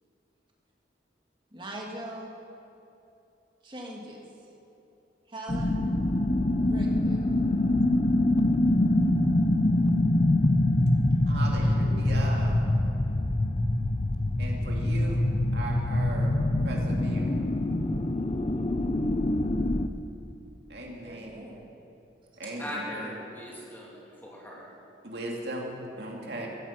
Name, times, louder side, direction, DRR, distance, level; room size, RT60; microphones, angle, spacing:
voice 1, 1.5-2.3 3.6-4.2 5.3-5.9 6.7-7.3 11.5-11.8 21.0-21.7 22.3-22.6, right 1 dB, 25° right, -2 dB, 2.5 m, -42 dB
sound 1, 5.5-19.9, left 1 dB, 30° left, 0.6 m, -25 dB
voice 2, 11.3-12.6 14.4-15.2 15.5-16.3 16.6-17.3 20.7-21.4 22.4-23.1 25.0-26.5, right 1 dB, 60° right, -1 dB, 2.5 m, -38 dB
voice 3, 22.6-24.7, left 1 dB, 10° left, -4 dB, 2.9 m, -39 dB
15.5 x 15.0 x 6.0 m, 2.9 s
head